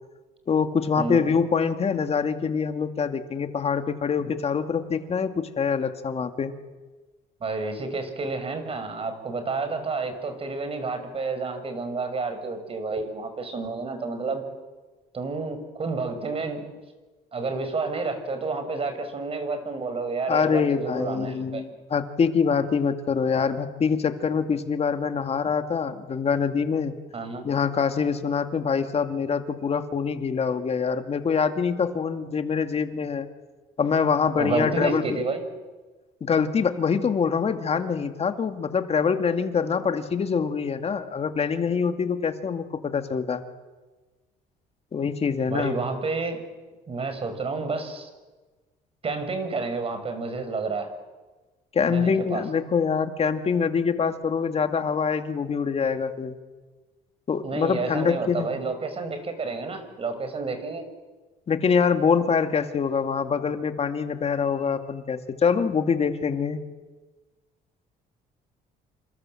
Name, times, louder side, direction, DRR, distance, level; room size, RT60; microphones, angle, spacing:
voice 1, 0.5-6.5 20.3-26.9 27.4-33.3 33.8-35.2 36.2-43.4 44.9-45.7 51.7-56.4 57.3-58.5 61.5-66.6, left 6 dB, 35° left, 7 dB, 2.3 m, -25 dB
voice 2, 7.4-14.4 15.1-16.6 17.3-21.6 27.1-27.4 34.4-35.4 45.5-46.4 46.9-48.1 49.0-50.9 51.9-52.4 57.4-60.8, right 3 dB, 35° right, 9 dB, 5.8 m, -30 dB
28.5 x 26.5 x 7.8 m, 1.3 s
cardioid pair, 110°, 17 cm